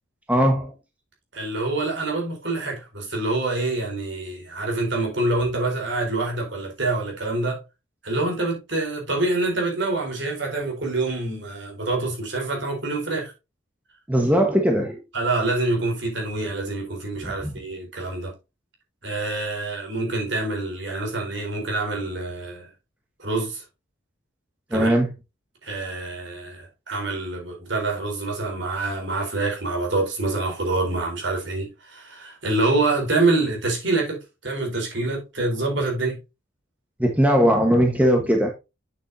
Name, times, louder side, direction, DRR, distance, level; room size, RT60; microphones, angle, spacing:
voice 1, 0.3-0.7 14.1-15.0 17.2-17.5 24.7-25.1 37.0-38.5, equal, 5° right, 1.4 m, -19 dB
voice 2, 1.3-7.6 8.0-13.3 15.1-18.3 19.0-22.7 23.2-23.6 24.7-25.0 25.6-36.2, right 2 dB, 60° right, 4.2 m, -26 dB
8.5 x 7.4 x 2.8 m
head